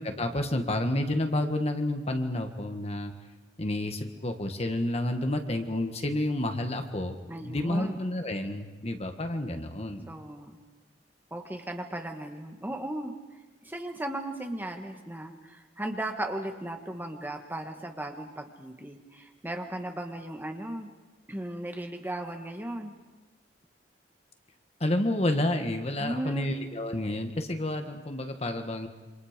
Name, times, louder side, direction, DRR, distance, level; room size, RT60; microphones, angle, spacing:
voice 1, 0.0-3.1 3.6-10.1 24.8-28.9, left 1 dB, 35° left, 6 dB, 1.7 m, -30 dB
voice 2, 7.3-8.0 10.1-10.6 11.3-13.1 13.6-20.9 21.3-22.9 26.0-26.5, right 1 dB, 10° right, 4 dB, 1.8 m, -36 dB
28.0 x 26.0 x 5.2 m, 1.2 s
head